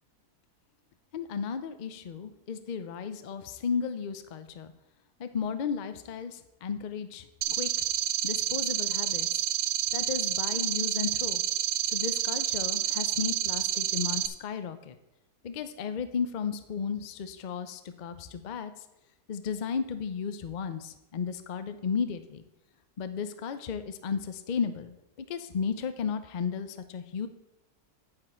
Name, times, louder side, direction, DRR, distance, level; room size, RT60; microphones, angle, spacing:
voice 1, 1.1-4.7 5.2-7.7 8.2-9.3 9.9-11.4 11.9-15.0 15.4-18.7 19.3-22.4 23.0-27.3, left 6 dB, 75° left, 10 dB, 0.4 m, -34 dB
sound 1, 7.4-14.3, right 12 dB, 85° right, 1.2 m, -29 dB
8.8 x 8.0 x 4.4 m, 0.89 s
omnidirectional pair, 1.7 m